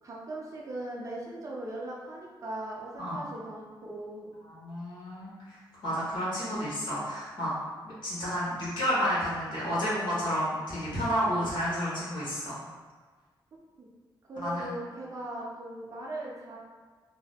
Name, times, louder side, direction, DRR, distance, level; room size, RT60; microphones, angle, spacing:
voice 1, 0.0-4.3 13.8-13.9 14.3-16.6, right 1 dB, 40° right, -3 dB, 0.5 m, -39 dB
voice 2, 4.5-7.5 7.8-12.6 14.4-14.7, equal, 60° left, -8 dB, 1.2 m, -31 dB
2.7 x 2.0 x 3.4 m, 1.5 s
wide cardioid pair, 175°, 9 cm